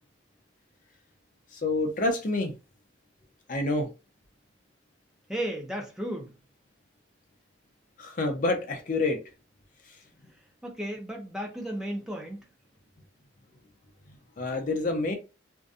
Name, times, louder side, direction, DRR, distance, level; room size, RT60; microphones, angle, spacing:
voice 1, 1.5-2.5 3.5-3.9 8.0-9.2 14.1-15.2, left 2 dB, 45° left, 0.5 m, -28 dB
voice 2, 5.3-6.3 10.6-12.4, right 1 dB, 5° right, 0.4 m, -34 dB
2.6 x 2.1 x 2.4 m
head